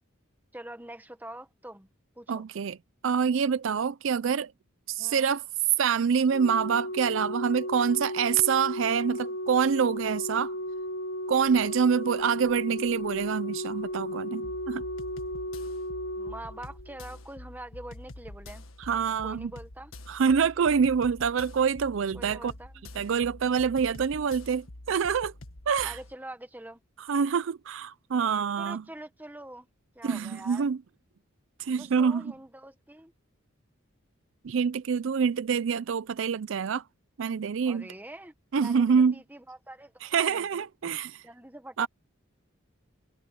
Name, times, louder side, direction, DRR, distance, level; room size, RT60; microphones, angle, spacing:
voice 1, 0.5-1.9 2.1-2.4 5.0-5.4 16.2-18.7 19.2-19.9 22.1-22.8 25.8-26.8 28.6-29.7 29.9-30.7 31.8-33.1 37.6-40.5 41.2-41.9, right 1 dB, 10° right, 1.5 m, -44 dB
voice 2, 2.3-2.8 3.0-4.5 4.9-5.4 5.8-10.5 11.3-14.8 18.8-19.5 20.1-22.5 22.9-25.3 25.7-26.0 27.0-28.8 30.0-30.8 31.6-32.3 34.4-36.8 37.2-37.9 38.5-39.2 40.0-41.2 41.8-41.9, right 6 dB, 65° right, 0.4 m, -26 dB
Organ, 6.3-17.2 18.3-18.5, equal, 60° left, 1.0 m, -35 dB
sound 1, 14.4-26.1, left 1 dB, 80° left, 1.6 m, -46 dB
head